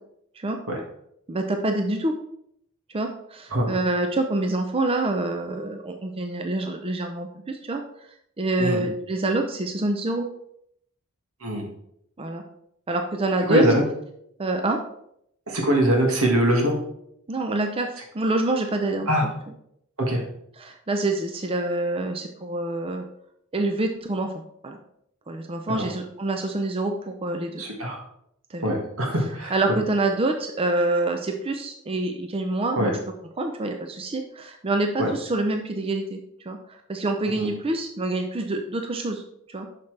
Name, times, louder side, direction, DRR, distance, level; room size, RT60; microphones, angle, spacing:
voice 1, 1.3-2.1 2.9-7.8 8.4-10.3 12.2-12.4 12.9-13.6 14.4-14.8 17.3-19.3 20.6-23.0 23.5-24.3 24.6-24.8 25.3-27.6 28.5-28.7 29.5-32.9 33.4-39.2 39.5-39.7, right 2 dB, 25° right, 4 dB, 0.5 m, -26 dB
voice 2, 13.5-13.8 15.5-16.7 19.1-19.3 20.0-20.2 27.6-28.0 28.6-29.5 32.8-32.9 35.0-35.1 37.3-37.5, equal, 80° right, 0 dB, 1.8 m, -22 dB
7.5 x 5.8 x 3.3 m, 0.74 s
head